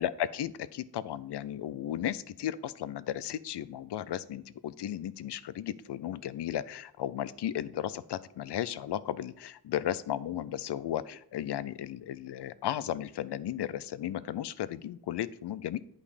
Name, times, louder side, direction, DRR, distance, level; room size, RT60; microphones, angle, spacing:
voice 1, 0.0-15.8, left 11 dB, 85° left, 17 dB, 0.5 m, -35 dB
8.5 x 5.4 x 4.9 m, 0.73 s
wide cardioid pair, 80°, 40 cm